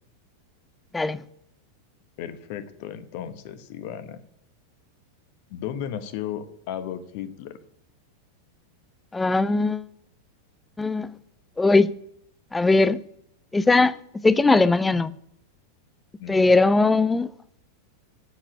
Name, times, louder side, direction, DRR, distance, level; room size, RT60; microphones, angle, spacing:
voice 1, 2.2-4.2 5.5-7.6 16.2-16.6, left 9 dB, 45° left, 1.1 m, -35 dB
voice 2, 9.1-9.9 10.8-11.1 11.6-11.9 12.5-13.0 13.5-14.0 14.2-15.1 16.3-17.3, left 3 dB, 10° left, 0.5 m, -19 dB
9.7 x 7.6 x 7.5 m
figure-of-eight pair, 90°, 0 cm